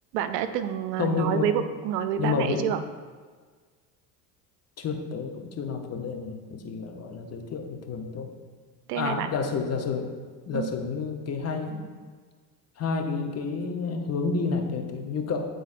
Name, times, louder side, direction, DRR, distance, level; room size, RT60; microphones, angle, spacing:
voice 1, 0.1-2.8 8.9-9.3 10.5-10.7, right 10 dB, 80° right, 11 dB, 0.6 m, -28 dB
voice 2, 1.0-1.5 2.2-2.7 4.8-8.3 8.9-10.1 10.5-11.9 12.8-15.4, left 5 dB, 30° left, 4 dB, 0.8 m, -30 dB
9.9 x 3.9 x 2.5 m, 1.5 s
hypercardioid pair, 75°, 47 cm